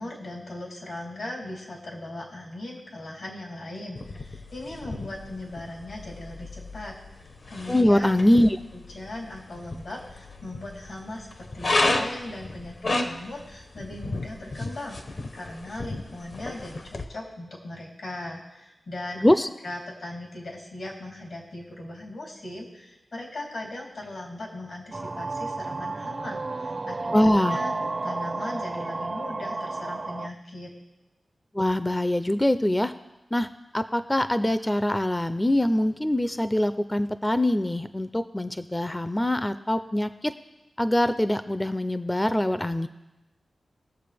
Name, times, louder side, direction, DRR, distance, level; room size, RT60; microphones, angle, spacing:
voice 1, 0.0-6.9 7.2-8.3 8.7-19.2 19.6-27.7 28.0-30.7, left 1 dB, 80° left, -3 dB, 3.5 m, -39 dB
sound 1, 4.0-17.0, left 2 dB, 60° left, 1.0 m, -33 dB
voice 2, 7.7-8.6 19.2-19.5 27.1-27.6 31.5-32.9 33.3-33.5 33.7-40.3 40.8-42.9, left 1 dB, 15° left, 11 dB, 0.4 m, -23 dB
sound 2, 24.9-30.3, right 3 dB, 45° right, 0.5 m, -32 dB
21.0 x 7.2 x 3.4 m, 1.0 s
cardioid pair, 65°, 0 cm